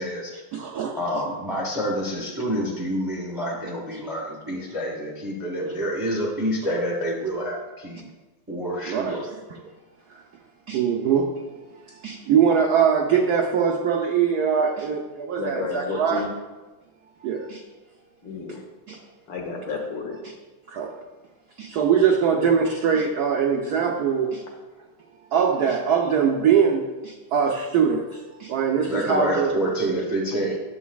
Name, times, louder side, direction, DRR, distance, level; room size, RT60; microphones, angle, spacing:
voice 1, 0.0-0.4 0.9-8.0 8.5-9.2 28.8-30.6, equal, 15° right, -2 dB, 0.7 m, -27 dB
voice 2, 0.5-1.0 8.9-9.3 10.7-11.3 12.0-16.3 17.2-17.6 18.9-19.0 19.7-19.8 20.1-20.2 20.7-20.9 21.6-24.4 25.3-28.1 28.4-29.5, right 7 dB, 85° right, 2 dB, 0.8 m, -22 dB
voice 3, 15.4-16.3 18.2-18.6 19.3-20.2, left 5 dB, 65° left, 1 dB, 1.8 m, -31 dB
10.0 x 7.2 x 2.3 m, 1.2 s
omnidirectional pair, 2.4 m